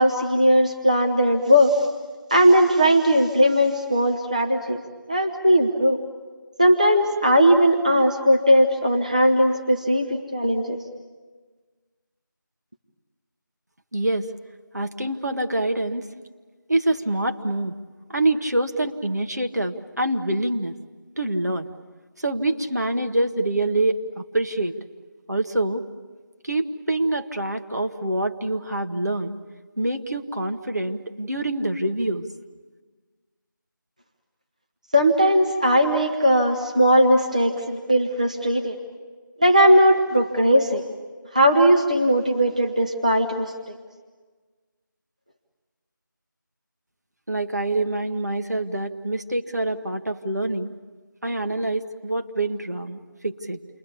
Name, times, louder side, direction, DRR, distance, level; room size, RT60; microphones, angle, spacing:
voice 1, 0.0-1.9 2.3-4.8 5.1-6.0 6.6-10.8 34.9-38.8 39.4-40.8 41.3-43.8, equal, 20° right, 2 dB, 0.9 m, -18 dB
voice 2, 13.9-14.3 14.7-16.1 16.7-17.7 18.1-20.7 21.2-21.7 22.2-24.8 25.3-25.8 26.4-29.3 29.8-32.3 47.3-50.7 51.2-53.6, right 2 dB, 55° right, 6 dB, 1.5 m, -25 dB
29.0 x 22.5 x 8.5 m, 1.4 s
figure-of-eight pair, 180°, 11 cm